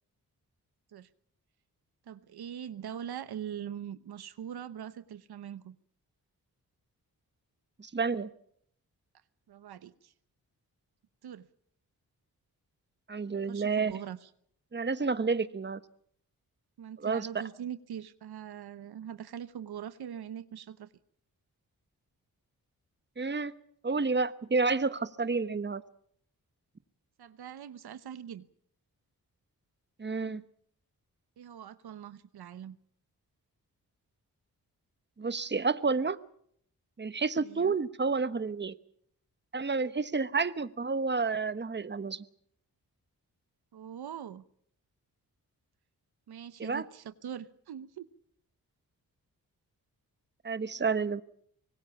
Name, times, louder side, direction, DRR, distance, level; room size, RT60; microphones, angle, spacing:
voice 1, 2.1-5.8 9.5-10.1 11.2-11.5 13.3-14.3 16.8-20.9 27.2-28.5 31.4-32.8 37.4-37.8 43.7-44.4 46.3-48.1, right 9 dB, 85° right, 14 dB, 1.0 m, -42 dB
voice 2, 7.8-8.3 13.1-13.9 14.7-15.8 17.0-17.3 23.2-23.5 23.8-25.8 30.0-30.4 35.2-36.2 37.0-38.8 39.5-42.2 46.6-46.8 50.4-51.2, right 4 dB, 30° right, 14 dB, 1.2 m, -30 dB
25.0 x 19.0 x 7.2 m, 0.66 s
cardioid pair, 55°, 37 cm